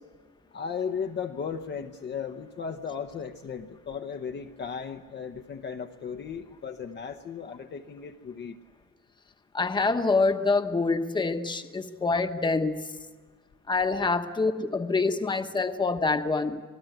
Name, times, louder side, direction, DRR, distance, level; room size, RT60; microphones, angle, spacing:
voice 1, 0.5-8.6, left 6 dB, 35° left, 5 dB, 0.9 m, -36 dB
voice 2, 9.5-12.9 13.7-16.6, left 3 dB, 15° left, 7 dB, 1.1 m, -26 dB
26.5 x 19.5 x 9.1 m, 1.4 s
cardioid pair, 175°, 33 cm